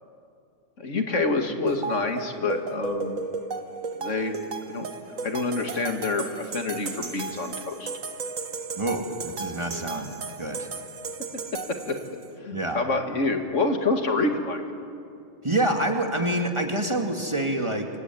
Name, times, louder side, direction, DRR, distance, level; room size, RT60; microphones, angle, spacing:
voice 1, 0.8-3.2 4.0-4.4 4.7-4.9 5.2-7.9 11.9-12.0 12.4-14.6, left 3 dB, 70° left, 5 dB, 2.4 m, -27 dB
sound 1, 1.7-12.3, right 4 dB, 85° right, 1.8 m, -35 dB
voice 2, 8.8-10.1 10.4-10.7 12.5-12.8 15.4-17.9, right 1 dB, 20° right, 3 dB, 2.3 m, -27 dB
26.0 x 24.0 x 9.4 m, 2.5 s
omnidirectional pair, 1.3 m